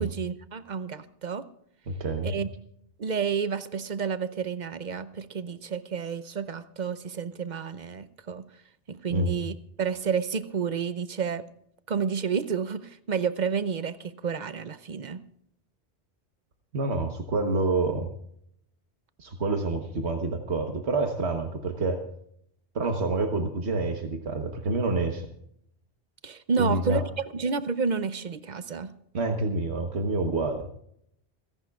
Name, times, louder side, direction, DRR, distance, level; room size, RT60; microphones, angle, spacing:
voice 1, 0.0-1.5 2.2-2.5 3.0-8.5 8.9-11.4 11.9-15.2 26.2-27.0 27.3-28.9, right 6 dB, 50° right, 13 dB, 0.7 m, -30 dB
voice 2, 1.9-2.4 9.1-9.3 16.7-18.1 19.2-22.0 22.7-25.3 26.6-27.0 29.1-30.7, right 3 dB, 75° right, 5 dB, 1.5 m, -27 dB
28.5 x 11.0 x 2.4 m, 0.70 s
omnidirectional pair, 1.1 m